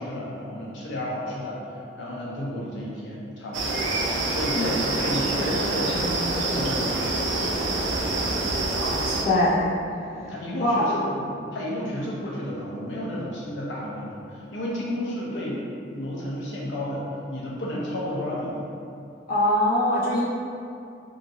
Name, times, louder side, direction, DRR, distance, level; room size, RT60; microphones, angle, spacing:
voice 1, 0.0-1.6 2.0-3.9 4.3-7.7 10.2-15.6 15.9-17.0 17.3-18.7, left 1 dB, 85° left, -5 dB, 0.7 m, -32 dB
sound 1, 3.5-9.2, right 2 dB, 85° right, 0.4 m, -26 dB
voice 2, 8.7-9.7 10.2-10.3 10.6-10.9 19.3-20.2, left 1 dB, 50° left, -9 dB, 0.8 m, -23 dB
2.9 x 2.5 x 2.6 m, 2.5 s
head